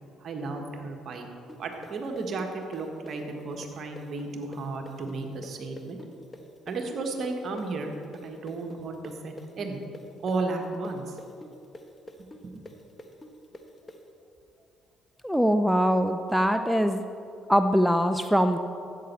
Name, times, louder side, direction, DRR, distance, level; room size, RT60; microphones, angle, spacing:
voice 1, 0.2-1.3 1.6-6.0 6.7-7.9 8.2-9.8 10.2-11.2 12.2-12.5, right 3 dB, 50° right, 3 dB, 1.4 m, -34 dB
sound 1, 1.5-9.1 9.4-14.0, left 1 dB, 25° left, 1.2 m, -46 dB
voice 2, 15.2-17.0 17.5-18.6, equal, ahead, 8 dB, 0.5 m, -22 dB
13.0 x 8.3 x 4.4 m, 2.6 s
hypercardioid pair, 50°, 0 cm